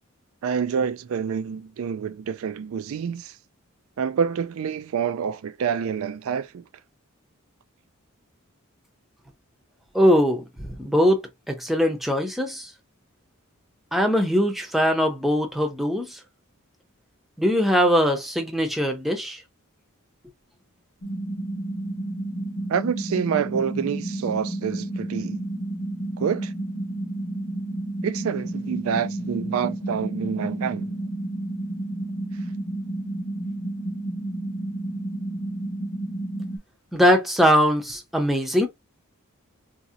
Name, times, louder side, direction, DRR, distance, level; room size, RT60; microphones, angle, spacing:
voice 1, 0.4-3.4 4.0-6.6 22.7-25.4 26.2-26.5 28.0-31.0, right 7 dB, 75° right, 0.3 m, -27 dB
voice 2, 9.9-12.7 13.9-16.2 17.4-19.4 36.9-38.7, equal, ahead, 0.6 m, -21 dB
sound 1, 21.0-36.6, right 1 dB, 40° left, 0.9 m, -31 dB
4.0 x 2.8 x 2.4 m
head